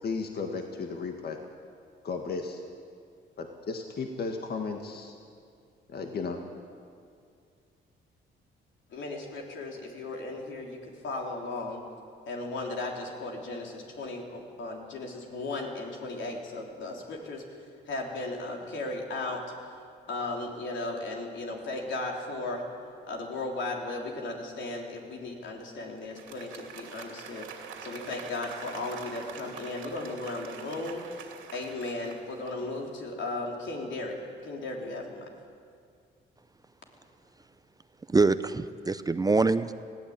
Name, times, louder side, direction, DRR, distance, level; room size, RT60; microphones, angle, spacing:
voice 1, 0.0-1.4 2.0-2.6 3.4-5.2 5.9-6.4, left 4 dB, 55° left, 3 dB, 1.8 m, -34 dB
voice 2, 8.9-11.8 12.3-17.4 17.9-19.4 20.1-22.6 23.1-27.5 27.8-31.1 31.5-35.3, left 2 dB, 70° left, 0 dB, 3.7 m, -36 dB
Applause, 26.0-33.0, right 6 dB, 85° right, 2.7 m, -45 dB
voice 3, 38.1-39.7, right 3 dB, 20° right, 12 dB, 0.6 m, -24 dB
20.0 x 15.5 x 8.9 m, 2.2 s
cardioid pair, 90°, 20 cm